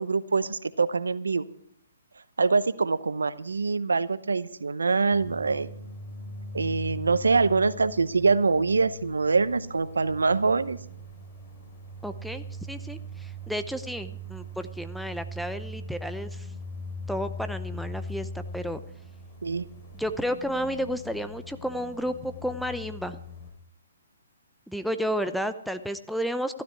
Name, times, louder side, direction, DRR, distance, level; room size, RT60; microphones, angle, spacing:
voice 1, 0.0-1.4 2.4-5.7 6.5-10.8 19.4-19.7, right 4 dB, 80° right, 16 dB, 0.8 m, -24 dB
sound 1, 5.1-23.5, left 1 dB, 35° left, 5.9 m, -40 dB
voice 2, 12.0-16.5 17.1-18.8 19.9-23.2 24.7-26.6, equal, ahead, 10 dB, 0.7 m, -32 dB
15.0 x 13.0 x 4.7 m, 0.68 s
hypercardioid pair, 135°, 0 cm